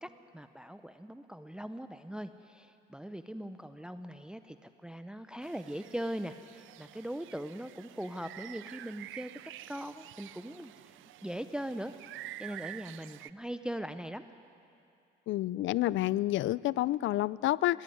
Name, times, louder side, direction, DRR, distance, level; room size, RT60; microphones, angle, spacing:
voice 1, 0.0-10.7 11.2-14.2, right 1 dB, 5° right, 10 dB, 0.7 m, -40 dB
sound 1, 5.4-13.3, right 15 dB, 80° right, 0.5 m, -49 dB
voice 2, 15.3-17.8, left 15 dB, 75° left, 21 dB, 0.4 m, -29 dB
19.5 x 16.5 x 9.4 m, 2.6 s
cardioid pair, 90°, 20 cm